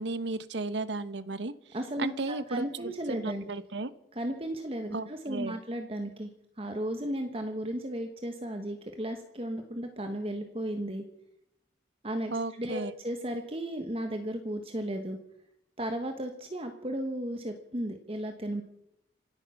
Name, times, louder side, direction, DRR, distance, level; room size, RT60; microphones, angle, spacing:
voice 1, 0.0-1.5 2.0-3.9 4.9-5.6 12.3-12.9, right 3 dB, 70° right, 15 dB, 0.9 m, -34 dB
voice 2, 1.7-3.5 4.1-6.3 6.6-11.0 12.0-15.2 15.8-18.6, right 1 dB, 30° right, 6 dB, 1.2 m, -35 dB
26.0 x 9.1 x 5.8 m, 0.78 s
head